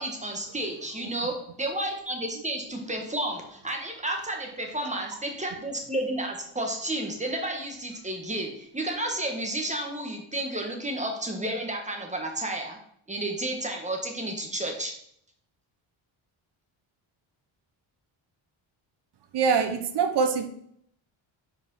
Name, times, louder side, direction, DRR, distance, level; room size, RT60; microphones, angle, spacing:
voice 1, 0.0-12.8 13.1-14.9, right 1 dB, 15° right, 2 dB, 1.5 m, -31 dB
voice 2, 19.3-20.5, right 5 dB, 55° right, 8 dB, 1.0 m, -24 dB
5.3 x 4.8 x 5.5 m, 0.68 s
cardioid pair, 105°, 49 cm